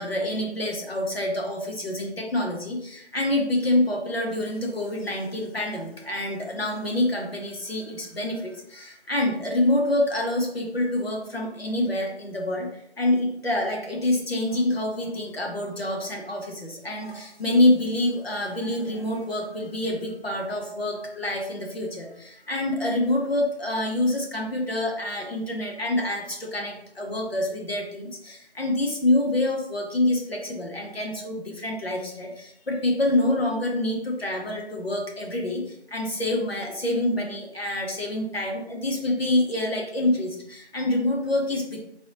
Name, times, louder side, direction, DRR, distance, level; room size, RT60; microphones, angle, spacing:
voice 1, 0.0-12.7 13.0-41.8, left 1 dB, 60° left, 0 dB, 1.1 m, -26 dB
4.0 x 2.9 x 2.6 m, 0.75 s
figure-of-eight pair, 170°, 34 cm